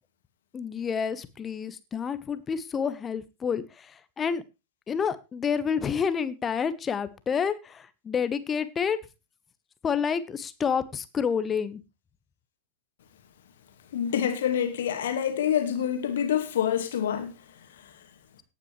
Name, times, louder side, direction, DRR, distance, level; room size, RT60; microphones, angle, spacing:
voice 1, 0.5-4.4 4.9-9.0 9.8-11.8, left 6 dB, 20° left, 1.2 m, -29 dB
voice 2, 13.9-17.3, left 9 dB, 60° left, 2.3 m, -26 dB
18.0 x 9.0 x 3.2 m
figure-of-eight pair, 90°, 0 cm